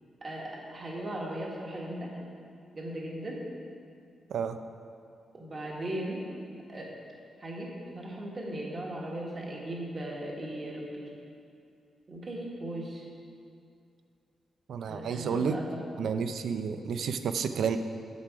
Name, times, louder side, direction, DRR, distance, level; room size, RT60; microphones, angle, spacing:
voice 1, 0.2-2.1 2.7-3.4 5.3-6.3 6.7-6.9 7.4-11.1 12.1-13.1 14.9-16.1, right 1 dB, 25° right, -2 dB, 1.4 m, -38 dB
voice 2, 14.7-15.6 16.0-17.8, right 6 dB, 65° right, 9 dB, 0.5 m, -30 dB
9.5 x 7.5 x 4.8 m, 2.5 s
wide cardioid pair, 170°, 0 cm